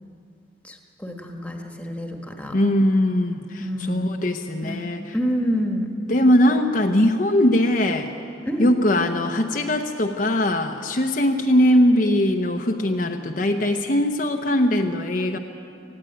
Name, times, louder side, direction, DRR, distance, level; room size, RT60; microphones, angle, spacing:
voice 1, 0.6-2.5 3.6-4.1 4.6-4.8 5.1-5.9 8.4-8.7, equal, 5° left, 2 dB, 1.5 m, -27 dB
voice 2, 2.5-5.1 6.1-8.1 8.6-15.4, left 1 dB, 45° left, 4 dB, 0.9 m, -20 dB
18.5 x 16.0 x 9.0 m, 2.5 s
head